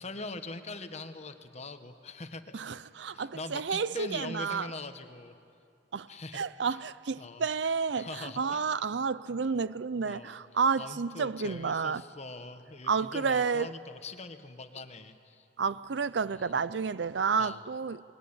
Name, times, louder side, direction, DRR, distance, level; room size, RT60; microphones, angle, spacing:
voice 1, 0.0-2.6 3.1-5.3 6.1-6.8 7.2-7.5 7.9-8.8 9.4-9.5 10.0-10.4 10.8-15.5 16.3-16.5 17.4-17.6, left 3 dB, 40° left, 1.3 m, -43 dB
voice 2, 2.5-4.7 5.9-6.1 6.3-12.0 12.9-13.7 15.6-18.0, right 5 dB, 75° right, 0.6 m, -30 dB
28.5 x 21.5 x 8.8 m
head